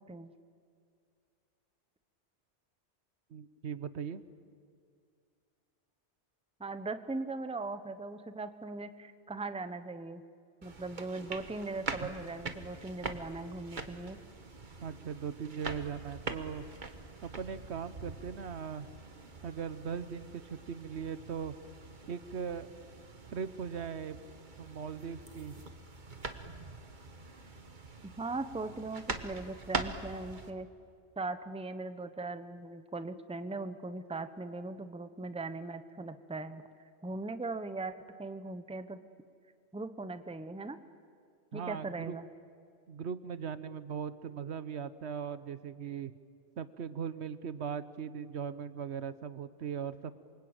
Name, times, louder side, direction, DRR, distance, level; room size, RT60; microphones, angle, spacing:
voice 1, 3.3-4.3 14.8-16.7 17.2-18.9 19.4-21.5 22.1-22.7 23.3-24.2 24.6-25.6 41.5-42.2 42.9-46.1 46.6-50.1, right 7 dB, 70° right, 14 dB, 1.1 m, -39 dB
voice 2, 6.6-10.2 10.6-14.2 28.0-30.7 31.2-36.6 37.0-39.0 39.7-40.8 41.5-42.3, right 3 dB, 5° right, 11 dB, 0.8 m, -39 dB
sound 1, 10.6-30.5, right 3 dB, 45° right, 1.5 m, -44 dB
27.5 x 24.0 x 8.9 m, 2.3 s
omnidirectional pair, 1.2 m